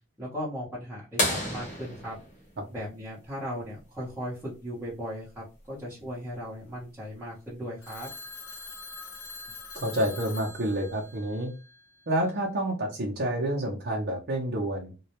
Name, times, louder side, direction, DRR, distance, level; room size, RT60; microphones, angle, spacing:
voice 1, 0.2-2.1 2.7-8.1, equal, 10° right, -9 dB, 0.7 m, -37 dB
sound 1, 1.2-3.6 5.6-5.7 7.9-8.0 9.7-10.0 10.8-10.9, left 1 dB, 35° left, 0.7 m, -31 dB
Telephone, 7.8-12.1, left 4 dB, 85° left, 0.7 m, -44 dB
voice 2, 9.7-11.5 12.1-15.0, right 1 dB, 45° right, -3 dB, 0.5 m, -29 dB
2.2 x 2.0 x 2.8 m, 0.32 s
head